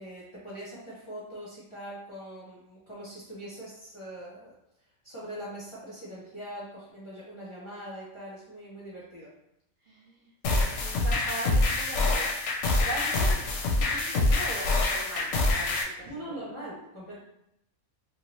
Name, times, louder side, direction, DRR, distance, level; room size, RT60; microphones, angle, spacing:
voice 1, 0.0-4.5 5.0-9.3 16.0-17.2, right 1 dB, 30° left, -8 dB, 0.6 m, -42 dB
voice 2, 9.8-12.3 12.8-13.4 13.8-16.3 17.1-17.2, right 1 dB, 50° right, -7 dB, 0.7 m, -39 dB
sound 1, 10.4-15.8, left 2 dB, 65° left, 0.9 m, -26 dB
2.7 x 2.7 x 3.0 m, 0.80 s
omnidirectional pair, 1.4 m